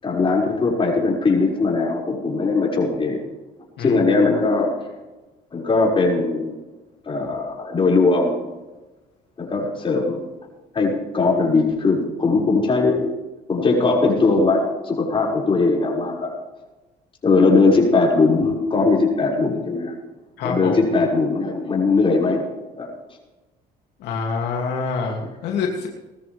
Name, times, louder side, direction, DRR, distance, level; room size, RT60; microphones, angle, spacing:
voice 1, 0.0-3.3 3.8-4.7 5.5-6.5 7.1-8.4 9.4-10.2 10.7-13.1 13.5-16.3 17.2-20.0 20.4-22.5 22.8-22.9, left 3 dB, 30° left, -2 dB, 6.2 m, -19 dB
voice 2, 20.4-20.8 24.0-25.9, left 5 dB, 85° left, 0 dB, 2.9 m, -26 dB
20.5 x 13.5 x 3.6 m, 1.1 s
cardioid pair, 110°, 17 cm